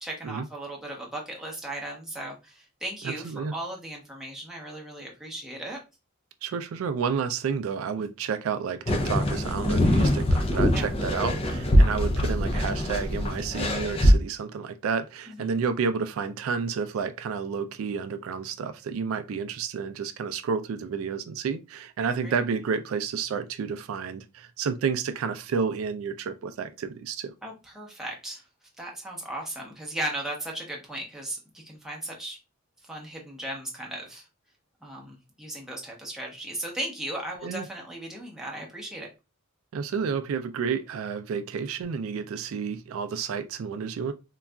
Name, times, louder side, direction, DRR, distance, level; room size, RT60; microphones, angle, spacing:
voice 1, 0.0-5.8 10.7-10.8 15.3-15.5 22.0-22.3 27.4-28.4 28.8-32.4 32.9-34.2 34.8-39.1, right 1 dB, ahead, 0.8 m, -36 dB
voice 2, 3.0-3.5 6.4-27.3 37.4-37.7 39.7-44.1, right 6 dB, 80° right, 0.3 m, -30 dB
sound 1, 8.9-14.1, equal, 30° left, 0.4 m, -23 dB
3.8 x 2.3 x 2.2 m
head